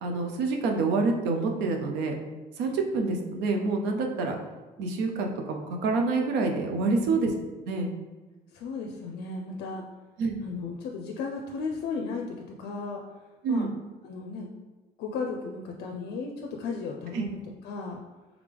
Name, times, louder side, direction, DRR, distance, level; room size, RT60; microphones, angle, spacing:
voice 1, 0.0-2.1 2.6-4.4 4.8-7.3 7.7-7.9 10.2-10.4 13.4-13.7 17.1-17.3, right 3 dB, 90° right, 4 dB, 0.6 m, -27 dB
voice 2, 8.5-9.8 10.4-13.0 13.5-13.7 14.0-14.5 15.0-18.0, left 4 dB, 75° left, 1 dB, 0.5 m, -35 dB
3.6 x 3.5 x 3.3 m, 1.2 s
cardioid pair, 110°, 17 cm